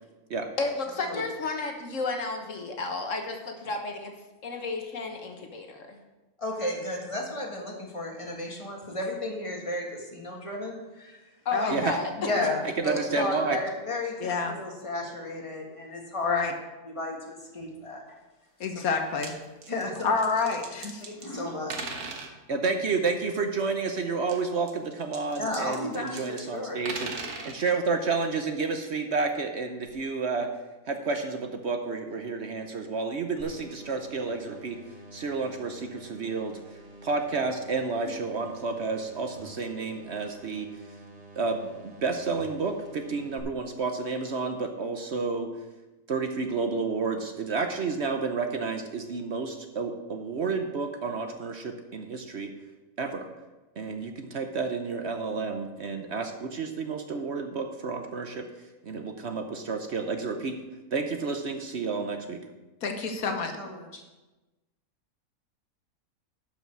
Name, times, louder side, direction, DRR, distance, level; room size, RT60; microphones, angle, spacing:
voice 1, 0.6-4.1 4.4-6.0 11.4-12.5, left 3 dB, 60° left, 4 dB, 1.5 m, -32 dB
voice 2, 6.4-11.2 12.3-16.4 16.9-18.0 19.7-20.1 21.0-21.9 25.4-26.8 63.2-64.0, left 1 dB, 20° left, 0 dB, 1.8 m, -33 dB
voice 3, 11.5-11.8 14.2-14.5 16.2-16.5 18.6-19.3 20.0-21.0 62.8-63.6, left 4 dB, 75° left, 5 dB, 1.5 m, -28 dB
voice 4, 12.8-13.6 22.5-27.1 27.4-30.5 30.9-34.8 35.1-36.6 37.0-40.7 41.4-45.5 46.1-52.5 53.0-53.3 53.8-58.5 58.8-60.6 60.9-62.4, right 4 dB, 55° right, 6 dB, 1.0 m, -30 dB
sound 1, 18.9-19.3 19.6-21.4 21.7-22.3 24.2-26.4 26.7-27.6 29.3-29.4 29.9-30.0, right 4 dB, 80° right, 1.7 m, -39 dB
sound 2, 33.4-43.4, right 1 dB, 25° right, 1.7 m, -48 dB
11.5 x 5.8 x 6.2 m, 1.1 s
omnidirectional pair, 1.5 m